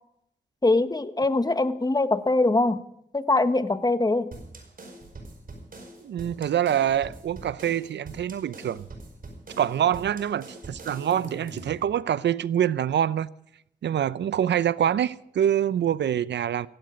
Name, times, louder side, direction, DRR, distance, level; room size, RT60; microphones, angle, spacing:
voice 1, 0.6-2.8 3.1-4.3, left 2 dB, 20° left, 1.4 m, -22 dB
sound 1, 4.3-11.8, right 2 dB, 50° right, 4.9 m, -44 dB
voice 2, 6.0-8.8 9.6-13.3 13.8-16.7, right 10 dB, 75° right, 0.7 m, -25 dB
16.5 x 16.0 x 5.2 m
cardioid pair, 55°, 18 cm